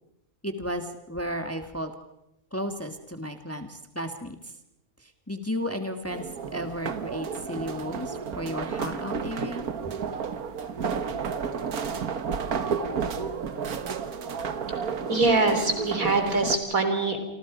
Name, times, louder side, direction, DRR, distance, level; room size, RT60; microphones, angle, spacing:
voice 1, 0.4-1.9 2.5-4.5 5.0-9.7, equal, 10° left, 6 dB, 1.5 m, -34 dB
sound 1, 6.1-16.6, right 6 dB, 85° right, 1.7 m, -31 dB
voice 2, 15.1-17.2, right 3 dB, 70° right, 6 dB, 4.0 m, -23 dB
28.5 x 26.0 x 5.1 m, 0.86 s
omnidirectional pair, 1.5 m